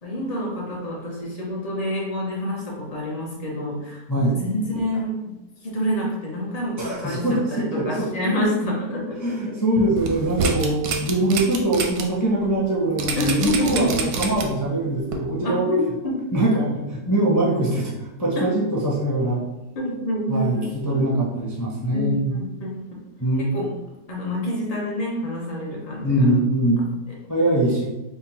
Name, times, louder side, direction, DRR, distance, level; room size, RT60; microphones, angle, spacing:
voice 1, 0.0-5.3 5.6-9.2 9.5-9.6 13.2-13.9 14.2-14.3 15.4-16.2 19.8-20.7 21.9-22.8 23.4-23.7 24.1-26.2, left 1 dB, 75° left, -4 dB, 0.3 m, -27 dB
voice 2, 6.8-8.3 9.2-15.7 16.3-19.5 20.3-22.4 23.2-23.5 26.0-26.8 27.3-27.9, right 1 dB, 20° left, -6 dB, 0.5 m, -22 dB
sound 1, 10.0-12.0 12.4-12.5 13.0-14.6 15.1-15.2, right 5 dB, 85° right, 1.2 m, -26 dB
3.7 x 2.2 x 4.2 m, 1.0 s
omnidirectional pair, 1.9 m